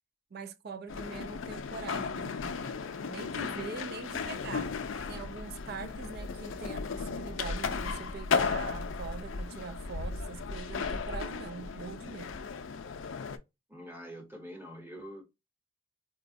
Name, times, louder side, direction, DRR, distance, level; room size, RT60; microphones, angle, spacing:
voice 1, 0.3-2.7 3.1-4.7 5.1-12.4, right 5 dB, 55° right, 0.4 m, -43 dB
sound 1, 0.9-13.4, left 5 dB, 90° left, 0.5 m, -35 dB
voice 2, 13.7-15.2, equal, 10° right, 1.0 m, -45 dB
4.1 x 2.3 x 2.5 m
head